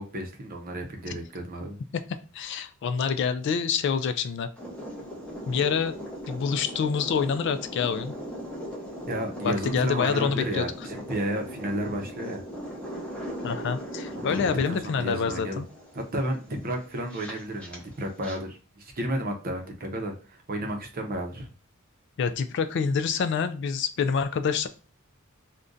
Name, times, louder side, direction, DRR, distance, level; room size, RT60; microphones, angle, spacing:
voice 1, 0.0-1.8 9.1-12.4 14.1-15.6 15.9-20.1 20.5-21.5, right 1 dB, 45° right, 3 dB, 0.6 m, -32 dB
voice 2, 2.3-4.5 5.5-6.0 6.3-8.1 9.4-10.7 13.4-15.6 22.2-24.7, left 6 dB, 60° left, 10 dB, 0.3 m, -27 dB
sound 1, 4.6-18.4, equal, 5° left, 0.7 m, -39 dB
2.5 x 2.2 x 3.7 m, 0.36 s
head